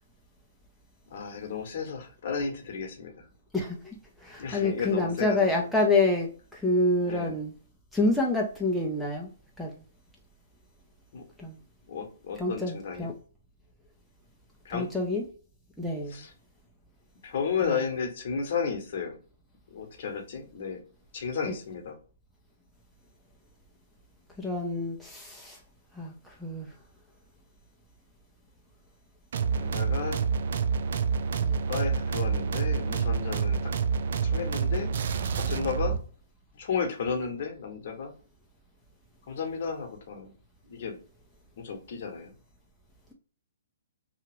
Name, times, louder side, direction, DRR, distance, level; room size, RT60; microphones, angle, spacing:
voice 1, 1.1-3.3 4.4-5.6 7.1-7.3 11.1-11.2 11.9-13.1 14.6-14.9 16.1-16.3 17.2-19.2 19.7-20.8 21.1-22.0 29.5-30.2 31.7-33.7 34.2-34.9 35.3-36.0 36.6-38.1 39.3-40.3 40.7-41.0 41.6-42.3, left 6 dB, 50° left, 0.9 m, -33 dB
voice 2, 3.5-3.9 4.2-7.5 7.9-9.3 9.6-9.7 11.4-11.6 12.3-13.1 14.7-15.3 15.8-16.2 17.6-17.9 21.5-21.6 24.4-25.6 26.0-26.7 31.4-31.6, left 2 dB, ahead, 0.5 m, -27 dB
sound 1, 29.3-36.0, right 6 dB, 60° right, 0.3 m, -28 dB
2.8 x 2.4 x 2.9 m
hypercardioid pair, 150°, 0 cm